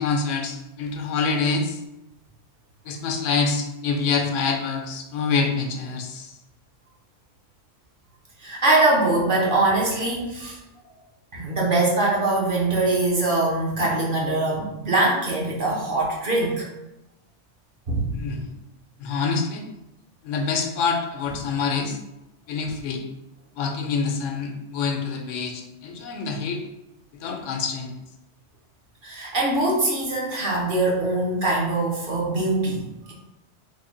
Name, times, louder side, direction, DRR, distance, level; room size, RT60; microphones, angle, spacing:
voice 1, 0.0-1.8 2.9-6.4 18.1-18.5 19.0-19.7 20.2-22.0 22.5-23.0 23.6-26.6 27.1-28.0, left 4 dB, 80° left, 3 dB, 0.9 m, -26 dB
voice 2, 8.4-10.6 11.3-16.7 17.9-18.1 29.0-33.1, right 2 dB, 50° right, -3 dB, 0.9 m, -22 dB
3.4 x 2.1 x 3.7 m, 0.94 s
omnidirectional pair, 1.3 m